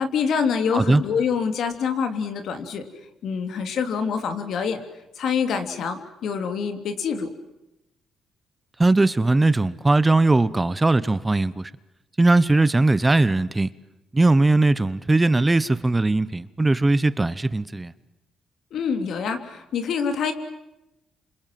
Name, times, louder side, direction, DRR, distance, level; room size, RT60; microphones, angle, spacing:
voice 1, 0.0-2.8 3.2-4.8 5.2-7.3 18.7-20.3, left 6 dB, 70° left, 8 dB, 3.0 m, -26 dB
voice 2, 0.7-1.0 8.8-11.7 12.2-13.7 14.1-17.9, right 2 dB, 20° right, 17 dB, 0.9 m, -19 dB
28.5 x 26.5 x 7.7 m, 0.91 s
cardioid pair, 90°, 0 cm